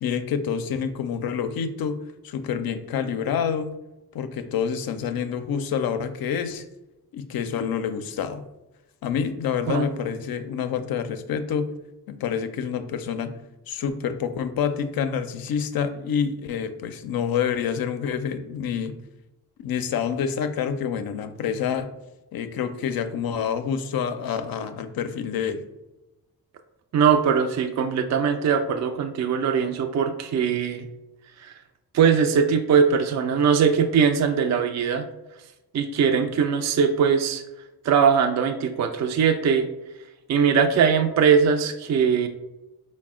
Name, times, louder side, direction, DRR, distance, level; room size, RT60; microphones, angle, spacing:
voice 1, 0.0-3.8 4.1-6.6 7.1-8.4 9.0-11.7 12.1-13.3 13.7-19.0 19.6-21.9 22.3-25.7, left 7 dB, 65° left, 10 dB, 0.5 m, -27 dB
voice 2, 26.9-30.9 31.4-31.5 31.9-35.0 35.7-37.4 37.8-39.7 40.3-42.3, right 6 dB, 45° right, 6 dB, 0.4 m, -21 dB
4.0 x 2.1 x 3.5 m, 0.99 s
supercardioid pair, 45°, 39 cm